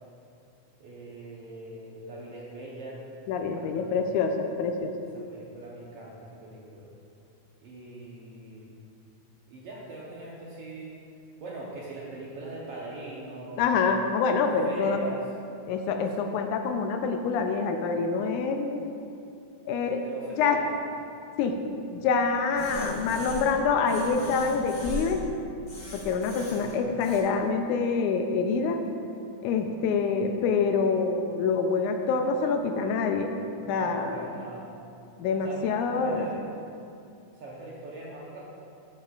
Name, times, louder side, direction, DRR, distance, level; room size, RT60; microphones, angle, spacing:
voice 1, 0.8-3.0 3.4-4.0 5.1-6.9 7.6-8.7 9.5-11.0 11.4-13.7 14.3-15.2 20.0-20.7 26.4-26.8 33.6-34.7 35.4-36.4 37.3-38.4, right 2 dB, 70° right, -5 dB, 1.5 m, -41 dB
voice 2, 3.3-4.9 13.6-15.0 15.7-18.8 19.7-20.0 20.4-20.6 21.4-21.6 21.9-25.2 25.9-28.8 29.4-33.3 33.7-34.3 35.2-36.3, left 5 dB, 80° left, 5 dB, 2.0 m, -26 dB
sound 1, 22.5-23.6 23.8-25.2 25.7-27.2, equal, 40° left, 1.0 m, -39 dB
12.5 x 7.5 x 2.4 m, 2.6 s
omnidirectional pair, 3.6 m